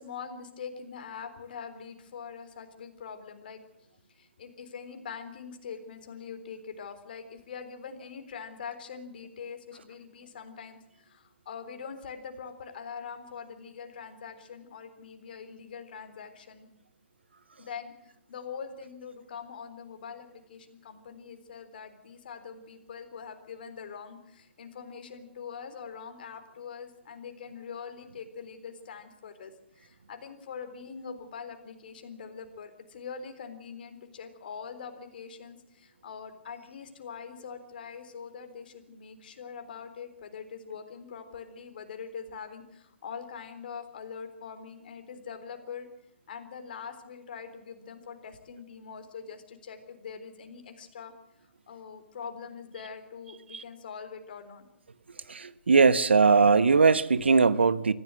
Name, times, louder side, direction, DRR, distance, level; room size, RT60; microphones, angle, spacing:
voice 1, 0.0-3.6 4.2-16.7 17.6-45.9 46.3-51.1 51.7-54.6, left 6 dB, 50° left, 8 dB, 3.7 m, -43 dB
voice 2, 55.3-57.9, right 4 dB, 70° right, 15 dB, 1.2 m, -20 dB
25.0 x 15.0 x 7.8 m, 0.82 s
figure-of-eight pair, 125°, 6 cm